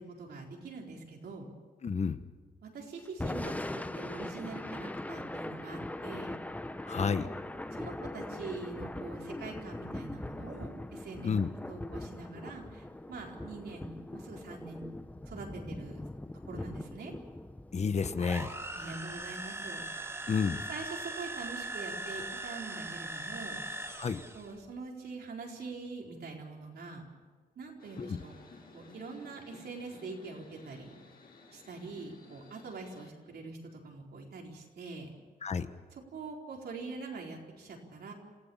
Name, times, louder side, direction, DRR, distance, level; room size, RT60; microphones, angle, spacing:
voice 1, 0.0-1.5 2.6-6.3 7.7-14.9 15.3-16.0 16.5-17.1 18.7-19.8 20.7-23.6 24.3-27.0 27.6-28.3 28.7-30.9 31.5-35.1 35.9-38.1, right 3 dB, 75° right, 0 dB, 4.4 m, -44 dB
voice 2, 1.8-2.2 6.8-7.3 11.2-11.5 17.7-18.5 20.3-20.6 24.0-24.2 28.0-28.2 35.4-35.7, left 5 dB, 40° left, 11 dB, 1.1 m, -30 dB
Thunder / Rain, 3.1-19.3, left 1 dB, 10° left, 0.8 m, -41 dB
sound 1, 18.2-24.5, right 2 dB, 15° right, 2.2 m, -40 dB
sound 2, 27.8-33.1, left 3 dB, 65° left, 7.4 m, -56 dB
28.0 x 16.0 x 7.3 m, 1.4 s
wide cardioid pair, 125°, 17 cm